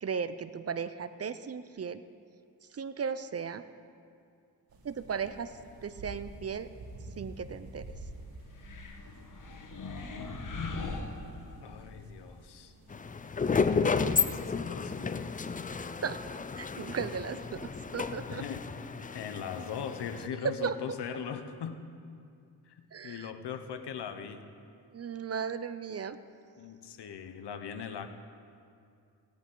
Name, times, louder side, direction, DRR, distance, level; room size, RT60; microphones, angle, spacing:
voice 1, 0.0-2.0 2.7-3.6 4.8-6.7 7.2-7.8 15.7-16.2 16.6-18.4 20.4-20.8 22.9-23.3 24.9-26.2, right 6 dB, 40° right, 13 dB, 0.5 m, -36 dB
sound 1, 4.7-13.7, right 2 dB, 60° right, 1.8 m, -48 dB
sound 2, 8.5-11.9, left 4 dB, 50° left, 1.2 m, -40 dB
voice 2, 11.6-12.7 13.5-15.3 18.3-18.7 19.1-21.8 22.7-22.8 23.0-24.4 26.6-28.1, left 7 dB, 75° left, 8 dB, 0.9 m, -40 dB
sound 3, 12.9-20.3, left 5 dB, 20° left, 0.4 m, -32 dB
17.0 x 10.5 x 3.9 m, 2.4 s
cardioid pair, 70°, 40 cm